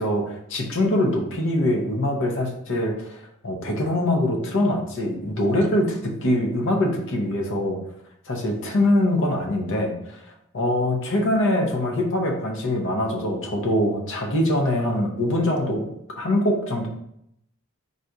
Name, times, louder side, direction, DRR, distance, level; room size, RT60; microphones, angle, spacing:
voice 1, 0.0-7.8 8.3-10.2 10.5-15.9 16.2-16.9, left 1 dB, 60° left, 2 dB, 0.8 m, -23 dB
4.0 x 2.5 x 4.5 m, 0.76 s
head